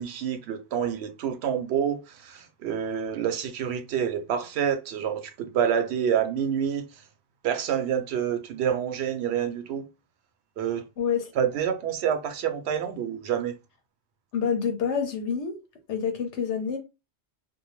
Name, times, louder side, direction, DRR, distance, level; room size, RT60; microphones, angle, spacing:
voice 1, 0.0-7.0 7.4-9.8 10.6-10.9 11.4-13.6, right 8 dB, 70° right, 0.8 m, -28 dB
voice 2, 11.0-11.3 14.3-15.5 15.9-16.8, left 7 dB, 90° left, 1.0 m, -27 dB
2.7 x 2.1 x 3.0 m
omnidirectional pair, 1.1 m